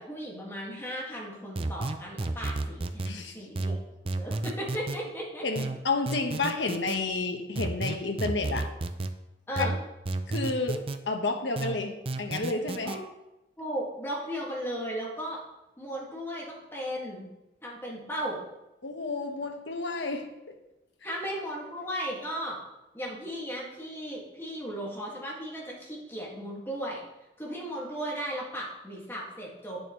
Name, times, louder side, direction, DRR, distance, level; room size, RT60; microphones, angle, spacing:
voice 1, 0.0-3.0 3.3-3.7 4.2-5.4 9.5-9.7 12.8-13.0 13.6-15.4 15.8-17.3 17.6-18.4 21.0-22.6 22.9-27.0 27.4-29.8, equal, 15° left, -4 dB, 1.9 m, -36 dB
sound 1, 1.5-3.1 3.5-5.0 5.5-7.0 7.5-9.1 9.5-11.0 11.5-13.0, right 2 dB, 30° right, 0.5 m, -32 dB
voice 2, 3.0-3.4 5.4-8.7 9.6-9.7 10.3-10.8 11.1-13.0 18.8-20.5, left 3 dB, 85° left, 3 dB, 1.1 m, -31 dB
10.5 x 6.8 x 3.1 m, 0.94 s
head